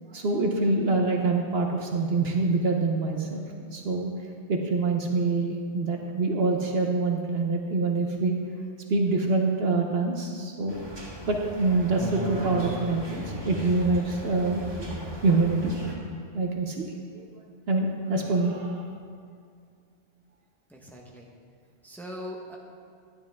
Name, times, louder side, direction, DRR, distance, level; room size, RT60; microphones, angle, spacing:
voice 1, 0.1-4.1 4.5-8.4 8.9-10.8 11.3-14.9 15.2-15.8 16.3-17.3 17.7-18.9, right 3 dB, 60° right, 2 dB, 1.0 m, -25 dB
sound 1, 10.7-15.9, right 1 dB, 25° right, 1.1 m, -36 dB
voice 2, 20.7-21.3 21.8-22.6, equal, ahead, -1 dB, 1.0 m, -40 dB
11.5 x 9.9 x 3.5 m, 2.2 s
omnidirectional pair, 1.2 m